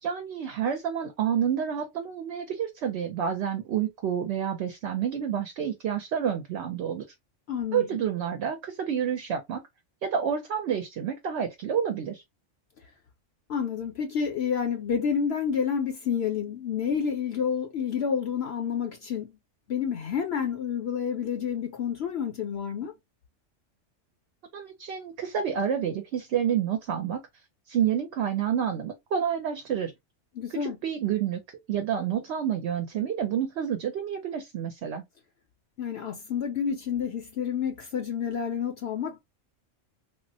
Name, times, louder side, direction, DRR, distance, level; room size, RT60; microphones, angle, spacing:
voice 1, 0.0-7.1 7.7-9.6 10.0-12.2 24.5-27.2 27.7-29.9 30.5-35.0, right 8 dB, 65° right, 0.8 m, -29 dB
voice 2, 7.5-7.9 13.5-19.3 19.7-22.9 30.3-30.8 35.8-39.2, left 7 dB, 65° left, 0.8 m, -29 dB
3.5 x 2.0 x 2.6 m
omnidirectional pair, 1.3 m